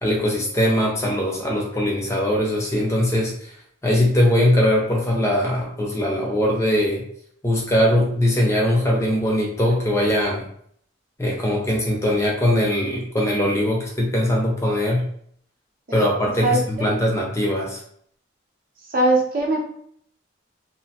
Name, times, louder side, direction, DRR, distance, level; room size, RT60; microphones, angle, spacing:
voice 1, 0.0-3.3 3.8-7.0 7.4-10.4 11.2-15.0 15.9-17.8, left 1 dB, 15° left, -2 dB, 0.5 m, -21 dB
voice 2, 16.4-17.0 18.9-19.7, right 2 dB, 45° right, 0 dB, 0.6 m, -21 dB
2.8 x 2.1 x 2.8 m, 0.65 s
head